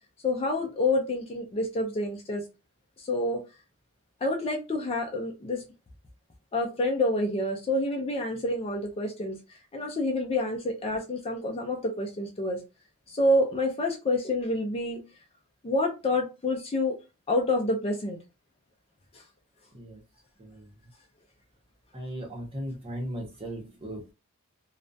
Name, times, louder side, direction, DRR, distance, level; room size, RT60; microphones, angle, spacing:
voice 1, 0.2-2.4 3.0-3.4 4.2-5.6 6.5-9.4 9.7-12.6 13.1-15.0 15.6-17.0 17.3-18.2, left 1 dB, 25° left, 0.4 m, -28 dB
voice 2, 20.4-20.7 21.9-24.1, equal, 25° right, 0.8 m, -37 dB
2.4 x 2.1 x 2.5 m
head